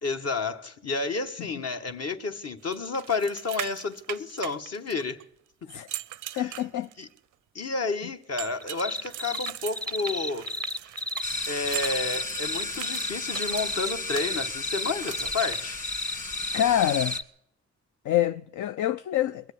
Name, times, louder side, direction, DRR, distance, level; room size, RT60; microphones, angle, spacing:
voice 1, 0.0-5.2 6.3-6.5 7.0-7.1 7.5-10.5 11.4-15.8, left 3 dB, 55° left, 1.4 m, -31 dB
sound 1, 2.7-5.2 5.7-7.2 8.4-14.2 15.0-15.6, right 13 dB, 90° right, 0.5 m, -40 dB
voice 2, 6.4-6.9 16.5-17.2 18.0-19.5, left 12 dB, 75° left, 0.5 m, -26 dB
sound 2, 8.6-9.5 9.8-17.2, left 1 dB, 5° left, 0.5 m, -32 dB
sound 3, 11.2-17.2, left 3 dB, 25° left, 1.8 m, -35 dB
21.5 x 8.0 x 8.4 m
cardioid pair, 60°, 30 cm